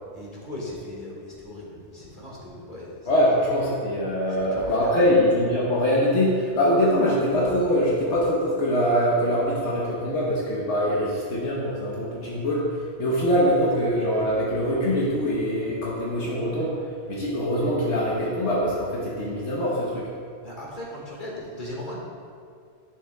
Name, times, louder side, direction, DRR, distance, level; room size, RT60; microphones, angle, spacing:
voice 1, 0.1-3.1 4.3-5.1 20.4-22.0, left 1 dB, 45° left, -5 dB, 1.9 m, -38 dB
voice 2, 3.1-16.7 17.1-20.1, equal, 75° left, -6 dB, 1.3 m, -23 dB
9.6 x 7.2 x 2.3 m, 2.2 s
omnidirectional pair, 1.2 m